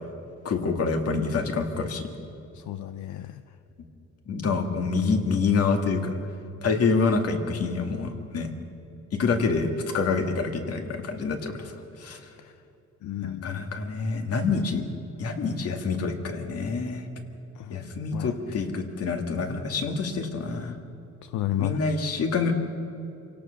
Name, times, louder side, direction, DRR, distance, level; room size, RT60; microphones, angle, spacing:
voice 1, 0.4-2.1 4.3-6.2 6.6-8.5 9.1-12.2 13.2-14.8 15.2-17.1 17.7-20.7 21.6-22.5, left 4 dB, 55° left, 5 dB, 2.2 m, -27 dB
voice 2, 2.5-3.4 12.4-12.5 13.0-13.6 17.5-17.8 18.1-18.6 21.2-22.0, left 12 dB, 75° left, 11 dB, 0.7 m, -33 dB
27.5 x 17.5 x 6.6 m, 2.9 s
cardioid pair, 155°, 30 cm